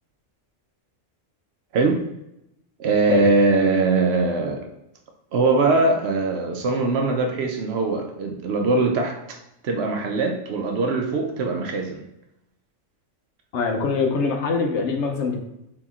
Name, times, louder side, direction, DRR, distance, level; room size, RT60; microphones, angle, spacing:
voice 1, 2.8-4.7 5.3-9.4 9.6-12.0, right 3 dB, 65° right, 3 dB, 0.7 m, -21 dB
voice 2, 13.5-15.4, left 4 dB, 65° left, 4 dB, 0.9 m, -23 dB
4.2 x 2.8 x 3.5 m, 0.85 s
omnidirectional pair, 1.3 m